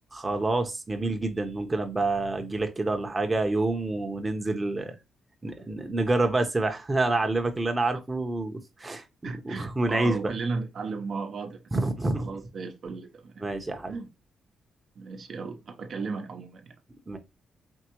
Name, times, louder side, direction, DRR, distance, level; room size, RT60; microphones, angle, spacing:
voice 1, 0.1-4.9 5.4-10.3 11.7-12.3 13.4-13.9 17.1-17.2, right 2 dB, 20° right, 0.9 m, -28 dB
voice 2, 9.2-11.6 12.1-13.4 13.9-14.1 15.0-16.7, right 4 dB, 60° right, 0.8 m, -35 dB
4.6 x 3.3 x 3.0 m
cardioid pair, 95°, 0 cm